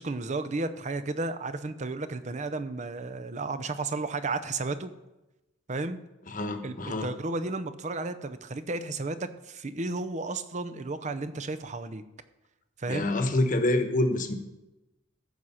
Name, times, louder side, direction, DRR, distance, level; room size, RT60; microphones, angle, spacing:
voice 1, 0.0-4.9 5.7-6.0 6.6-12.0 12.8-13.1, right 3 dB, 35° right, 11 dB, 0.6 m, -33 dB
voice 2, 6.3-7.1 12.9-14.3, left 1 dB, 40° left, 7 dB, 1.1 m, -26 dB
14.5 x 6.4 x 5.7 m, 1.0 s
head